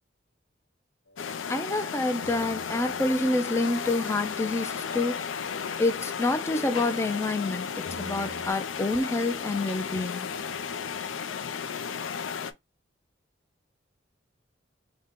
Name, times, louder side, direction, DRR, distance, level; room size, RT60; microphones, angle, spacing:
sound 1, 1.1-1.4 2.2-8.5, left 1 dB, 70° left, 0.8 m, -45 dB
sound 2, 1.2-12.5, left 6 dB, 90° left, 0.4 m, -34 dB
voice 1, 1.5-5.2 5.8-10.3, left 2 dB, 15° left, 0.4 m, -28 dB
3.9 x 2.2 x 3.6 m
head